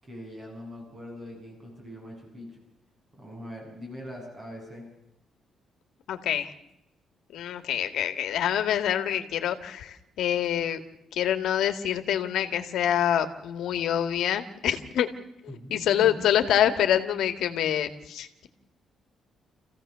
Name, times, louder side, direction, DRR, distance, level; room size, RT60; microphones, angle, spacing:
voice 1, 0.0-2.6 3.1-4.9 15.5-16.3, equal, 25° right, -1 dB, 7.6 m, -42 dB
voice 2, 6.1-6.5 7.3-10.8 11.1-15.1 15.7-18.5, left 10 dB, 85° left, 8 dB, 1.9 m, -26 dB
28.0 x 16.0 x 6.9 m, 0.87 s
cardioid pair, 155°, 0 cm